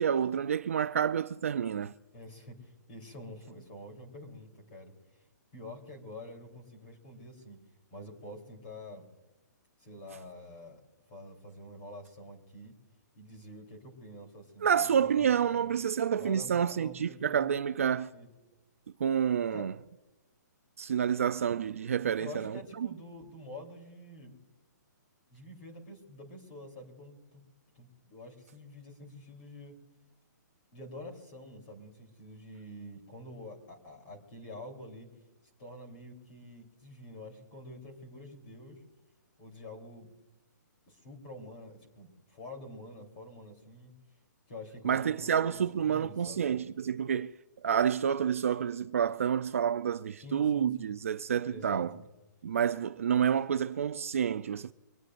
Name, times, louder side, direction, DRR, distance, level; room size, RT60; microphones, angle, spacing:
voice 1, 0.0-1.9 14.6-18.1 19.0-19.7 20.8-22.9 44.8-47.3 47.6-51.9 52.4-54.7, right 8 dB, 45° right, 0.4 m, -29 dB
voice 2, 2.1-4.9 5.5-7.6 7.9-9.1 9.8-10.8 11.1-12.7 13.1-15.7 16.1-17.4 17.9-18.3 19.5-19.7 22.2-24.3 25.3-27.4 27.7-29.8 30.7-35.1 35.6-38.8 39.4-40.1 40.9-43.9 44.5-46.4 50.2-51.0 51.5-52.0, left 1 dB, 25° left, 3.4 m, -47 dB
24.0 x 19.0 x 2.5 m
hypercardioid pair, 180°, 10 cm